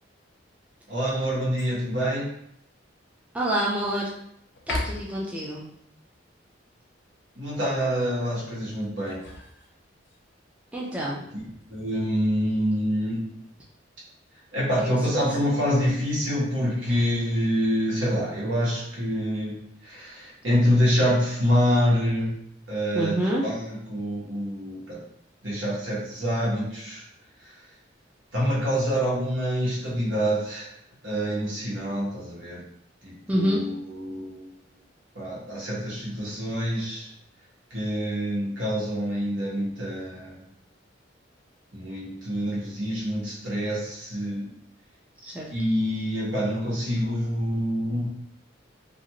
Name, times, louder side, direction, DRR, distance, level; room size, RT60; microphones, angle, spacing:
voice 1, 0.9-2.3 7.3-9.2 11.3-11.4 11.7-13.3 14.5-22.4 22.7-25.0 25.4-27.0 28.3-30.7 31.0-32.6 33.0-34.5 35.1-37.1 37.7-40.4 41.7-44.5 45.5-48.1, equal, 75° right, -6 dB, 1.2 m, -26 dB
sound 1, 1.6-2.0 2.6-2.7 3.2-4.0 4.5-5.3 8.8-10.2 11.6-12.1, left 2 dB, 65° left, 0.5 m, -37 dB
voice 2, 3.3-4.1 4.7-5.6 10.7-11.2 15.2-15.3 16.9-17.0 22.9-23.4 33.3-33.6 45.2-45.5, equal, 5° right, -5 dB, 0.4 m, -27 dB
2.5 x 2.4 x 2.9 m, 0.73 s
head